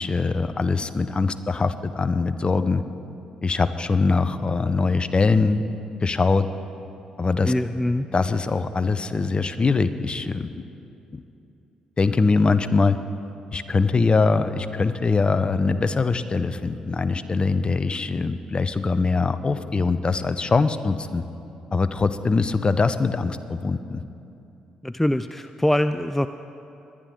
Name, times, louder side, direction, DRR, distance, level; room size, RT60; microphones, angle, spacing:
voice 1, 0.0-2.8 3.4-5.6 6.0-6.5 7.2-7.5 8.1-10.5 11.1-11.2 12.0-13.0 13.5-21.2 21.7-24.0, left 4 dB, 30° left, 13 dB, 0.7 m, -22 dB
voice 2, 7.4-8.1 24.8-26.3, left 1 dB, 5° left, 11 dB, 0.3 m, -23 dB
21.0 x 11.0 x 3.8 m, 2.7 s
figure-of-eight pair, 40°, 3 cm